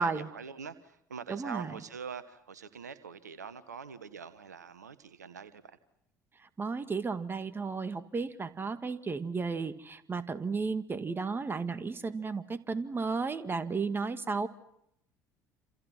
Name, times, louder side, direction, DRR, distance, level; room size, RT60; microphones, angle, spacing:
voice 1, 0.0-5.8, right 6 dB, 85° right, 13 dB, 1.2 m, -44 dB
voice 2, 1.3-1.8 6.6-14.5, right 4 dB, 25° right, 10 dB, 2.0 m, -33 dB
28.5 x 28.0 x 6.0 m, 0.77 s
figure-of-eight pair, 60°, 9 cm